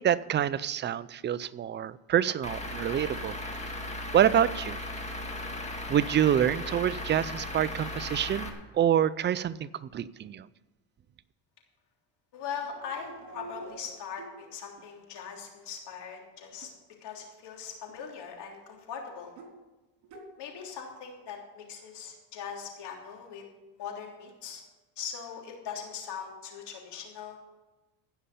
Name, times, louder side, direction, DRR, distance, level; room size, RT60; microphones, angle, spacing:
voice 1, 0.0-3.3 4.1-4.8 5.9-10.5, right 10 dB, 25° right, 16 dB, 0.4 m, -27 dB
Truck / Idling, 2.4-8.5, left 1 dB, 15° left, 2.0 m, -37 dB
voice 2, 12.3-16.7 17.0-19.3 20.4-23.4 23.8-24.6 25.0-27.4, left 7 dB, 60° left, 0 dB, 3.3 m, -40 dB
sound 1, 12.6-14.3 14.8-14.9 16.5-16.7 17.9-18.0 19.3-19.5 20.0-20.3, right 2 dB, 65° right, 3.5 m, -47 dB
15.5 x 5.6 x 8.4 m, 1.1 s
cardioid pair, 110°, 45 cm